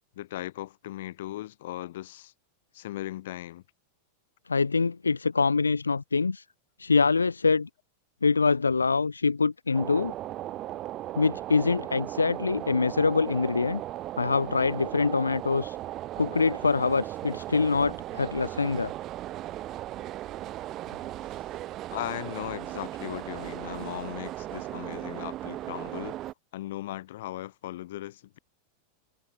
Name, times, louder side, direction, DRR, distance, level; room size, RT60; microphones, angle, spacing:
voice 1, 0.2-2.3 2.7-3.6 21.9-26.2 26.5-28.4, left 15 dB, 55° left, 6.3 m, -37 dB
voice 2, 4.5-6.4 6.8-7.7 8.2-10.1 11.2-13.8 14.2-15.8 16.2-18.9, left 4 dB, 75° left, 2.6 m, -25 dB
sound 1, 9.7-26.3, right 14 dB, 35° right, 3.7 m, -37 dB
figure-of-eight pair, 90°, 0 cm